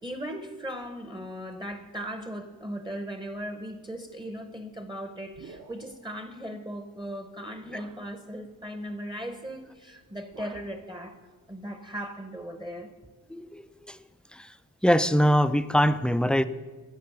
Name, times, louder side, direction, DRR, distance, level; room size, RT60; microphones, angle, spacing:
voice 1, 0.0-11.2 11.5-12.9, equal, 15° right, 7 dB, 0.8 m, -38 dB
sound 1, 5.3-6.1 7.0-7.1 7.6-8.1 9.5-9.8 10.0-10.8, right 4 dB, 55° right, 0.9 m, -49 dB
voice 2, 13.3-14.0 14.3-14.5 14.8-16.4, equal, 5° left, 13 dB, 0.3 m, -23 dB
12.0 x 7.7 x 6.8 m, 1.4 s
wide cardioid pair, 110°, 35 cm